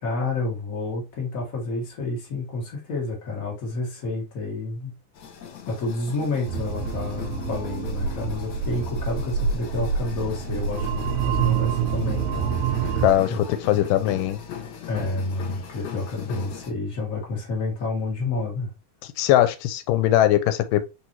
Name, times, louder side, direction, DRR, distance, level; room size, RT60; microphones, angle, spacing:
voice 1, 0.0-4.9 5.7-13.0 13.3-14.1 14.9-18.7, left 3 dB, 40° left, 1.4 m, -30 dB
sound 1, 5.1-16.7, left 7 dB, 70° left, 2.1 m, -39 dB
sound 2, 6.5-13.1, right 7 dB, 85° right, 1.5 m, -26 dB
voice 2, 13.0-13.3 13.7-14.4 19.2-20.9, left 13 dB, 90° left, 2.2 m, -20 dB
4.6 x 4.0 x 2.7 m
omnidirectional pair, 3.7 m